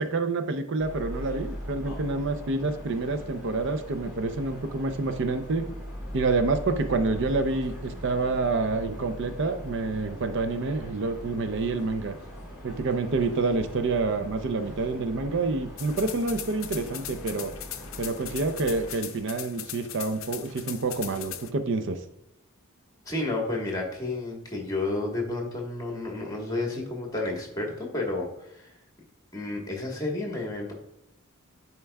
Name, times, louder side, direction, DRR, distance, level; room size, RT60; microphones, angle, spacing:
voice 1, 0.0-5.6 6.1-12.2 12.6-17.5 18.0-22.0, right 3 dB, 60° right, 8 dB, 0.5 m, -28 dB
sound 1, 0.8-18.9, equal, 5° right, 2.0 m, -41 dB
sound 2, 15.8-21.5, left 11 dB, 65° left, 0.5 m, -39 dB
voice 2, 23.0-28.7 29.3-30.7, left 2 dB, 15° left, 0 dB, 1.3 m, -31 dB
10.5 x 4.5 x 2.3 m, 0.83 s
head